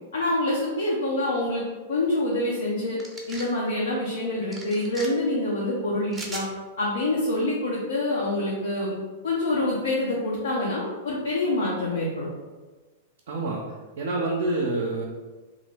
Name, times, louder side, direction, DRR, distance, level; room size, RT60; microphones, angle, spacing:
voice 1, 0.1-1.6 1.9-3.0 3.3-6.4 6.8-8.9 9.2-12.3, left 1 dB, 70° left, -5 dB, 0.6 m, -26 dB
sound 1, 3.0-3.5 4.5-5.1 6.1-6.5, right 2 dB, 10° right, 0.6 m, -38 dB
voice 2, 13.3-13.6 14.0-15.0, right 2 dB, 60° right, -1 dB, 0.4 m, -27 dB
2.8 x 2.5 x 3.2 m, 1.3 s
figure-of-eight pair, 100°, 0 cm